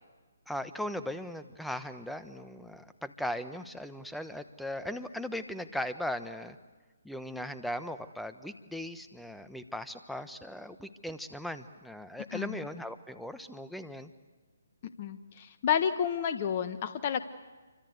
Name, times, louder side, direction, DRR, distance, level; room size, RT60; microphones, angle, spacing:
voice 1, 0.5-6.6 7.0-14.1, left 1 dB, ahead, 11 dB, 1.1 m, -38 dB
voice 2, 14.8-17.2, left 8 dB, 40° left, 10 dB, 1.3 m, -30 dB
28.0 x 25.0 x 8.1 m, 1.3 s
figure-of-eight pair, 140°, 0 cm